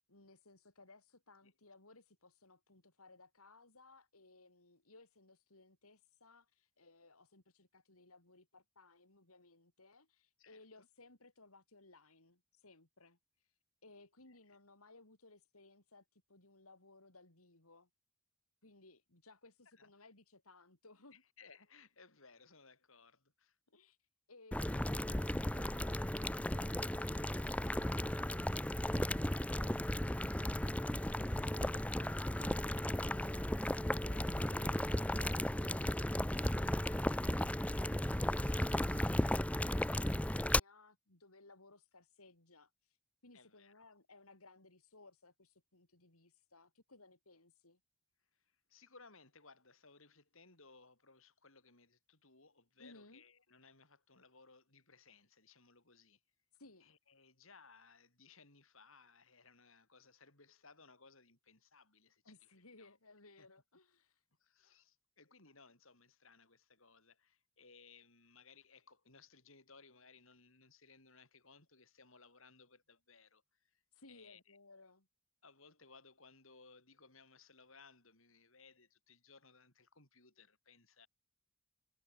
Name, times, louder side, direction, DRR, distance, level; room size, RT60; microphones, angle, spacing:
voice 1, 0.1-17.9 18.6-21.2 23.7-43.0 43.2-47.8 52.8-53.2 56.5-56.9 62.2-64.2 73.9-75.1, left 3 dB, 85° left, 4.9 m, -62 dB
voice 2, 10.4-10.9 14.3-14.6 19.7-19.9 21.1-23.6 43.3-43.9 48.4-56.2 56.8-62.3 62.8-63.0 63.4-63.5 64.4-73.8 74.1-74.6 75.4-81.1, left 4 dB, 70° left, 7.0 m, -63 dB
Boiling, 24.5-40.6, left 1 dB, 5° left, 0.7 m, -35 dB
head